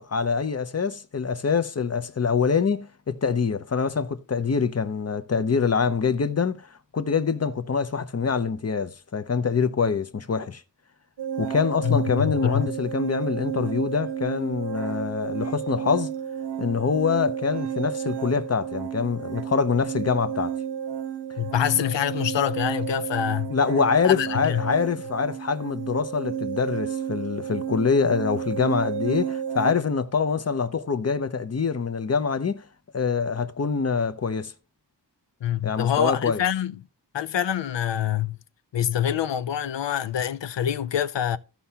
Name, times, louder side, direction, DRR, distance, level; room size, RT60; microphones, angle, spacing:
voice 1, 0.0-6.6 6.9-10.6 11.4-16.1 16.6-20.5 23.5-32.6 32.9-34.5 35.6-36.4, left 5 dB, 35° left, 0.7 m, -25 dB
sound 1, 11.2-29.7, right 9 dB, 70° right, 0.9 m, -32 dB
voice 2, 11.8-12.6 21.4-23.5 24.0-24.6 35.4-36.8 37.1-38.4 38.7-41.4, left 10 dB, 75° left, 0.6 m, -25 dB
14.5 x 5.6 x 2.8 m
wide cardioid pair, 75°, 43 cm